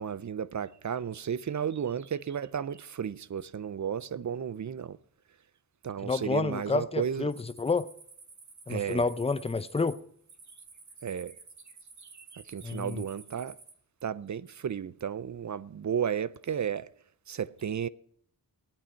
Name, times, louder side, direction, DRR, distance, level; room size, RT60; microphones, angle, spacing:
voice 1, 0.0-5.0 5.8-7.3 8.7-9.1 11.0-11.3 12.3-13.6 14.0-16.9 17.3-17.9, right 8 dB, 45° right, 0.5 m, -33 dB
voice 2, 6.0-7.9 8.7-10.0 12.6-13.0, left 4 dB, 15° left, 0.6 m, -29 dB
sound 1, 7.3-13.7, right 4 dB, 80° right, 2.0 m, -52 dB
17.5 x 8.9 x 4.4 m
cardioid pair, 55°, 42 cm